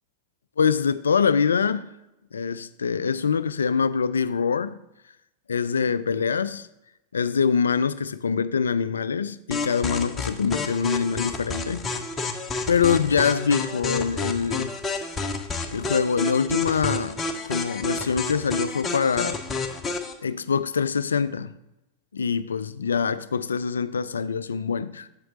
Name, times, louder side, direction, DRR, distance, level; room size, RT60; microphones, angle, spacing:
voice 1, 0.6-1.9 2.3-4.8 5.5-6.7 7.1-11.9 12.7-14.7 15.7-17.2 17.5-19.4 20.2-21.5 22.1-25.1, left 6 dB, 70° left, 0.3 m, -24 dB
sound 1, 9.5-20.1, left 3 dB, 20° left, 0.7 m, -30 dB
7.6 x 6.4 x 3.7 m
figure-of-eight pair, 90°, 0 cm